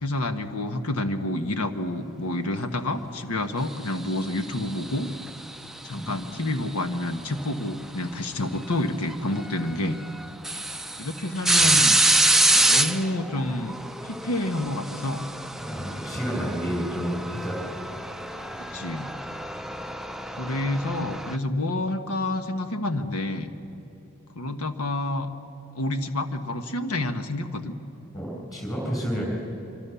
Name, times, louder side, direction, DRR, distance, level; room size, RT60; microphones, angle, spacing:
voice 1, 0.0-5.1 5.8-10.0 11.0-12.0 12.6-13.8 14.0-15.3 18.6-19.1 20.4-23.5 24.3-25.3 25.7-27.8, left 1 dB, 85° left, 8 dB, 1.3 m, -28 dB
sound 1, 4.1-5.6 7.4-7.5 9.1-9.2 9.7-9.8 10.2-21.4, right 2 dB, ahead, 0.5 m, -26 dB
voice 2, 15.6-17.8 28.1-29.3, equal, 15° left, -1 dB, 6.5 m, -30 dB
25.5 x 25.0 x 7.0 m, 2.8 s
head